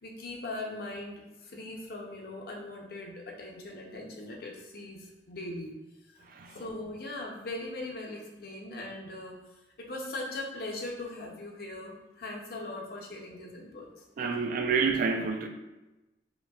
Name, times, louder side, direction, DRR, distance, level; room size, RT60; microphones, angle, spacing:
voice 1, 0.0-5.7 6.5-9.4 9.9-14.3, left 2 dB, 55° left, 0 dB, 0.7 m, -40 dB
voice 2, 6.3-6.6 14.2-15.5, right 5 dB, 50° right, 5 dB, 0.3 m, -28 dB
5.0 x 2.2 x 2.3 m, 1.0 s
head